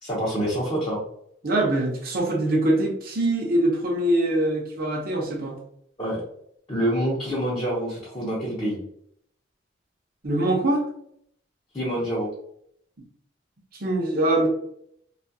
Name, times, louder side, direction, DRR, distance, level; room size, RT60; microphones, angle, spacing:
voice 1, 0.0-1.0 6.0-6.2 6.7-8.8 11.7-12.3, equal, 25° left, -8 dB, 0.7 m, -26 dB
voice 2, 1.4-5.6 10.2-10.8 13.8-14.5, right 1 dB, 50° right, 0 dB, 0.7 m, -23 dB
2.7 x 2.4 x 2.7 m, 0.69 s
head